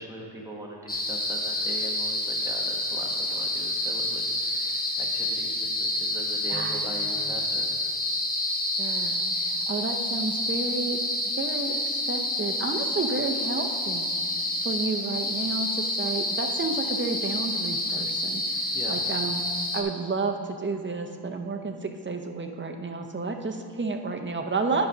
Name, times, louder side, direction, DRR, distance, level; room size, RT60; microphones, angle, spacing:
voice 1, 0.0-7.7 18.7-19.0, right 1 dB, 10° right, -2 dB, 1.2 m, -41 dB
sound 1, 0.9-19.8, left 1 dB, 20° left, 0.8 m, -28 dB
voice 2, 6.5-6.8 7.2-7.3 8.8-11.0 11.4-14.1 14.6-19.4 19.7-24.9, right 3 dB, 30° right, 4 dB, 0.6 m, -31 dB
9.6 x 5.1 x 5.4 m, 2.5 s
wide cardioid pair, 140°, 40 cm